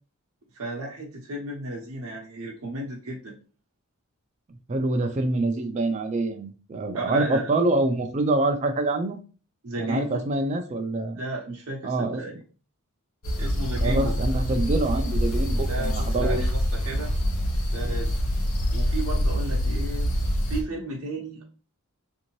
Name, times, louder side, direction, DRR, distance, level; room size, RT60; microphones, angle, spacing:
voice 1, 0.5-3.3 6.9-7.5 9.6-10.2 11.2-12.3 13.4-14.1 14.9-15.0 15.7-17.1 17.7-18.2 18.7-20.1 20.5-21.4, right 1 dB, 65° right, -3 dB, 0.7 m, -34 dB
voice 2, 4.7-9.2 9.8-11.2 11.8-12.2 13.8-16.4, right 2 dB, 30° right, 6 dB, 0.3 m, -26 dB
sound 1, 13.2-20.6, equal, 65° left, 0.9 m, -25 dB
3.6 x 2.6 x 3.0 m, 0.36 s
head